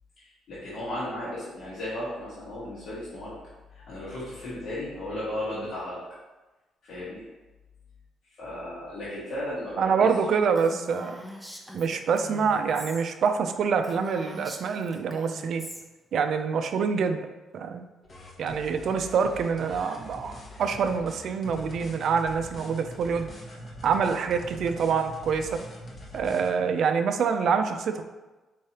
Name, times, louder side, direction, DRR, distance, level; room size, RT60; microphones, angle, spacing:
voice 1, 0.2-3.4 3.7-6.0 6.8-7.2 8.4-9.9, left 1 dB, 70° left, -10 dB, 1.3 m, -35 dB
voice 2, 9.8-11.2 11.7-15.7 16.1-17.3 17.5-17.8 18.4-23.3 23.8-25.6 26.1-28.0, right 6 dB, 65° right, 7 dB, 0.3 m, -26 dB
Female speech woman speaking, 10.6-13.0 13.4-13.5 13.8-15.8, left 1 dB, ahead, 0.6 m, -42 dB
sound 1, 18.0-26.5, left 1 dB, 40° left, 0.8 m, -43 dB
4.5 x 3.2 x 2.8 m, 1.1 s
cardioid pair, 90°, 0 cm